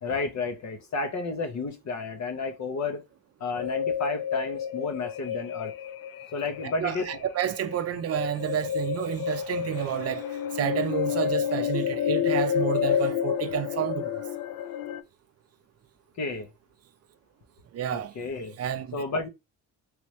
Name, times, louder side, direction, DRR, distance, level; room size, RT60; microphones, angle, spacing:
voice 1, 0.0-3.0 3.4-5.7 6.3-7.1 16.2-16.5 17.9-18.6 18.9-19.3, left 3 dB, 55° left, 1.0 m, -31 dB
sound 1, 3.6-15.0, left 8 dB, 90° left, 0.5 m, -30 dB
voice 2, 6.6-14.2 17.7-18.1 18.6-19.0, right 10 dB, 45° right, 0.5 m, -30 dB
3.3 x 3.0 x 3.2 m
cardioid pair, 120°, 34 cm